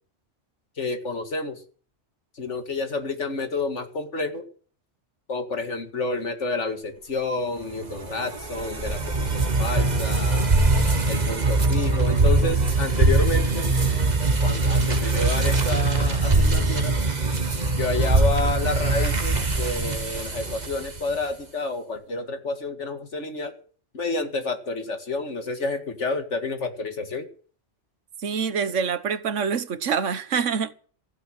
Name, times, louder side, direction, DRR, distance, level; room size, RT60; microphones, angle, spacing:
voice 1, 0.8-1.6 2.3-4.5 5.3-10.5 11.1-13.7 14.4-16.9 17.8-23.5 23.9-27.3, left 3 dB, 75° left, 2.4 m, -29 dB
sound 1, 7.8-21.2, right 3 dB, 35° right, 1.6 m, -22 dB
voice 2, 28.2-30.8, right 6 dB, 85° right, 1.4 m, -26 dB
15.0 x 9.4 x 8.8 m
omnidirectional pair, 1.2 m